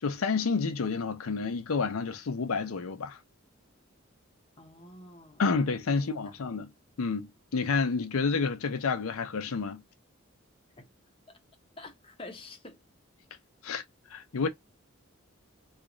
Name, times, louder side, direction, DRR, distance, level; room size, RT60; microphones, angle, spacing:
voice 1, 0.0-3.2 5.4-6.7 7.0-9.8 13.6-13.8 14.1-14.5, left 4 dB, 85° left, 0.5 m, -29 dB
voice 2, 4.6-5.4 5.9-6.3 10.8-10.9 11.3-11.4 11.8-12.8, left 2 dB, 25° left, 0.7 m, -47 dB
3.0 x 2.4 x 3.6 m
head